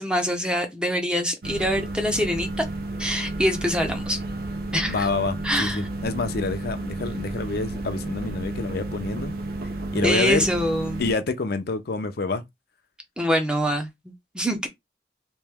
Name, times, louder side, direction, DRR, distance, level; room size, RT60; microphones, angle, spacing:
voice 1, 0.0-2.7 3.0-4.2 4.7-5.1 5.4-5.9 10.0-11.0 13.2-13.9 14.3-14.7, equal, 5° right, 0.6 m, -24 dB
sound 1, 1.4-11.1, right 2 dB, 55° right, 0.6 m, -32 dB
voice 2, 4.8-9.4 9.9-10.5 11.0-12.4, left 3 dB, 60° left, 0.5 m, -27 dB
3.0 x 2.7 x 3.4 m
head